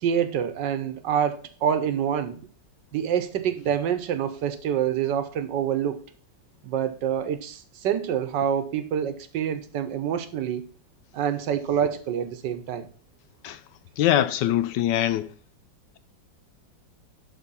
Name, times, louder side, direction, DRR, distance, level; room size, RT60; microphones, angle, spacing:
voice 1, 0.0-2.4 2.9-6.0 6.6-10.6 11.1-12.9, right 9 dB, 70° right, 1.5 m, -26 dB
voice 2, 14.0-15.3, left 12 dB, 75° left, 1.2 m, -23 dB
11.5 x 4.0 x 5.5 m
omnidirectional pair, 2.0 m